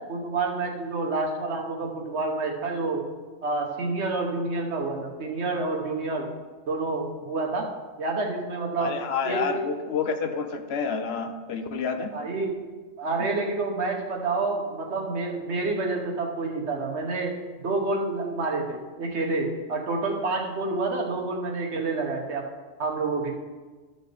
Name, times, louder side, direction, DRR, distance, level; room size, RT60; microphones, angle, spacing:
voice 1, 0.1-3.0 3.4-6.3 6.7-7.7 8.0-8.9 9.2-9.6 12.1-12.5 13.0-22.5 22.8-23.3, right 3 dB, 65° right, 2 dB, 1.3 m, -28 dB
voice 2, 8.8-12.1, left 5 dB, 65° left, 7 dB, 0.8 m, -29 dB
12.5 x 6.5 x 3.3 m, 1.3 s
omnidirectional pair, 1.3 m